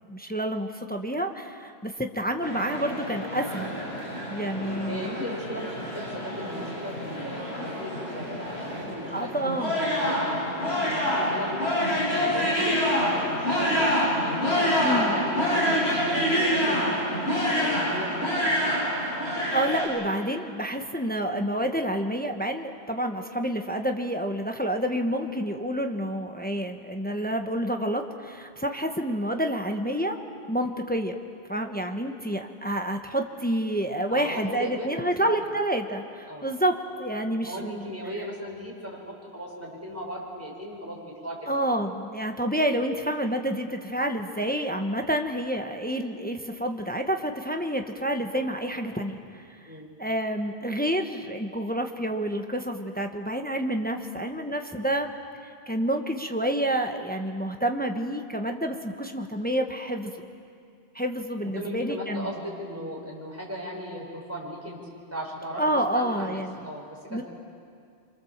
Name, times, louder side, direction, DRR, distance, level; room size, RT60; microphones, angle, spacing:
voice 1, 0.1-3.7 4.3-5.1 9.1-9.8 14.8-15.2 19.5-30.2 30.5-31.2 31.5-37.9 41.5-49.4 50.0-55.1 55.7-60.1 60.9-62.3 65.6-66.6 67.1-67.2, right 1 dB, 10° left, 4 dB, 1.2 m, -28 dB
sound 1, 2.4-19.9, equal, 85° left, 8.0 m, -27 dB
voice 2, 4.9-11.6 12.2-16.8 17.6-18.8 34.1-35.5 36.3-36.5 37.4-41.6 49.7-49.9 61.4-64.8 65.1-65.6 65.9-67.2, equal, 15° right, -3 dB, 6.0 m, -37 dB
28.0 x 25.0 x 7.4 m, 2.3 s
omnidirectional pair, 1.1 m